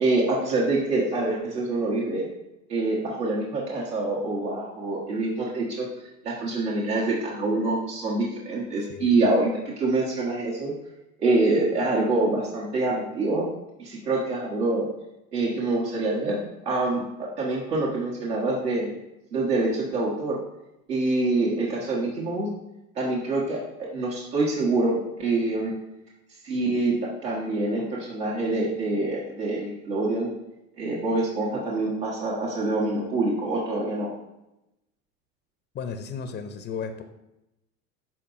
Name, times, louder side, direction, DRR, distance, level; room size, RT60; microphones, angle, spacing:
voice 1, 0.0-2.3 2.7-5.9 6.2-10.7 11.2-13.5 13.8-14.9 15.3-18.9 19.3-20.4 20.9-22.5 22.9-25.7 26.4-30.3 30.8-34.1, right 2 dB, 85° right, -6 dB, 1.4 m, -26 dB
voice 2, 8.9-9.2 35.7-37.0, left 6 dB, 25° left, 8 dB, 0.4 m, -34 dB
12.0 x 4.0 x 2.5 m, 0.92 s
hypercardioid pair, 80°, 47 cm